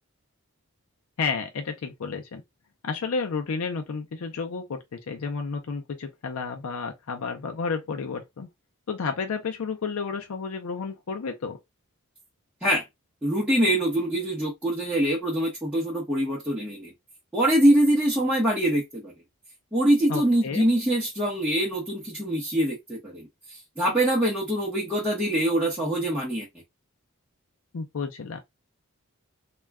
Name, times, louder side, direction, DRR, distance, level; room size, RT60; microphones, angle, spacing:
voice 1, 1.2-2.4 2.8-8.5 8.9-11.6 20.1-20.7 27.7-28.4, left 5 dB, 75° left, 0.5 m, -31 dB
voice 2, 13.2-16.9 17.3-19.1 19.7-23.3 23.8-26.5, right 1 dB, 5° right, 0.8 m, -24 dB
2.3 x 2.1 x 3.4 m
head